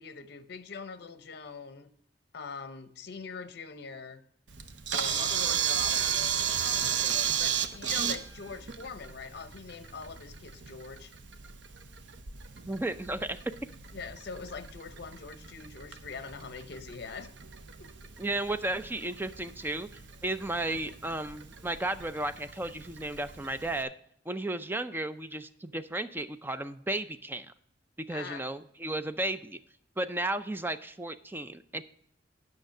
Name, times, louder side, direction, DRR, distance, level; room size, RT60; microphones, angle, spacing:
voice 1, 0.0-1.9 2.3-4.2 4.9-11.1 13.9-17.3 17.8-17.9 28.1-28.5, left 5 dB, 60° left, 11 dB, 0.7 m, -43 dB
Camera, 4.5-23.8, right 8 dB, 75° right, 0.7 m, -35 dB
voice 2, 12.7-13.4 18.2-19.9 20.2-23.9 24.3-27.5 28.1-29.6 30.0-31.8, right 2 dB, 10° right, 10 dB, 0.4 m, -34 dB
9.0 x 5.9 x 6.4 m, 0.68 s
head